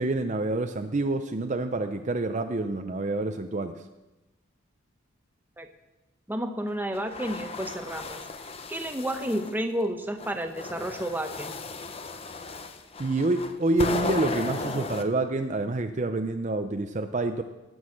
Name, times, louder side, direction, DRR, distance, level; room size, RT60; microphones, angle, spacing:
voice 1, 0.0-3.8 13.0-17.4, right 2 dB, 35° right, 7 dB, 0.5 m, -27 dB
voice 2, 6.3-8.2 8.7-11.6, right 1 dB, 10° right, 6 dB, 0.8 m, -31 dB
sound 1, 6.9-9.5 10.2-15.0, left 3 dB, 30° left, 0.7 m, -35 dB
17.0 x 6.3 x 6.3 m, 1.1 s
head